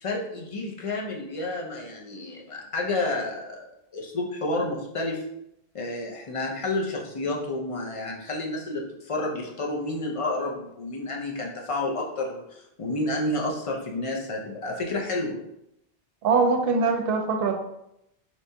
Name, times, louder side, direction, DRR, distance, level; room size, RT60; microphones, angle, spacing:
voice 1, 0.0-3.6 3.9-5.2 5.7-15.4, left 2 dB, 40° left, -1 dB, 0.5 m, -30 dB
voice 2, 16.2-17.5, right 4 dB, 70° right, 4 dB, 0.7 m, -22 dB
3.3 x 2.9 x 2.7 m, 0.81 s
omnidirectional pair, 1.1 m